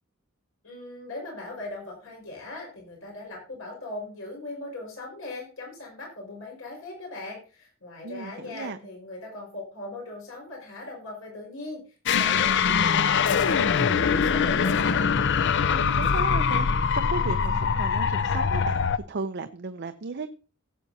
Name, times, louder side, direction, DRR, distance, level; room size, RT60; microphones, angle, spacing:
voice 1, 0.6-15.1, left 2 dB, 85° left, -1 dB, 5.4 m, -39 dB
voice 2, 8.0-8.8 15.7-20.3, right 4 dB, 55° right, 9 dB, 0.6 m, -35 dB
sound 1, 12.1-19.0, left 6 dB, 60° left, 0.5 m, -23 dB
17.5 x 8.0 x 2.8 m, 0.35 s
head